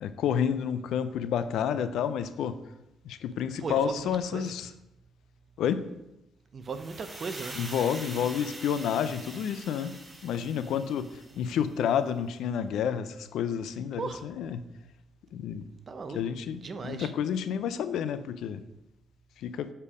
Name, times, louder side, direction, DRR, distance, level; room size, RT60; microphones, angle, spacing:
voice 1, 0.0-2.6 3.0-4.7 5.6-5.8 7.5-9.9 10.2-14.6 15.3-15.6 16.1-18.6 19.4-19.7, left 8 dB, 80° left, 12 dB, 0.5 m, -30 dB
voice 2, 3.6-4.5 6.5-7.6 14.0-14.2 15.9-16.2 16.5-17.1, right 4 dB, 45° right, 9 dB, 0.7 m, -37 dB
sound 1, 6.7-11.7, right 2 dB, 25° right, 1.6 m, -44 dB
7.1 x 4.4 x 5.0 m, 0.90 s
cardioid pair, 90°, 0 cm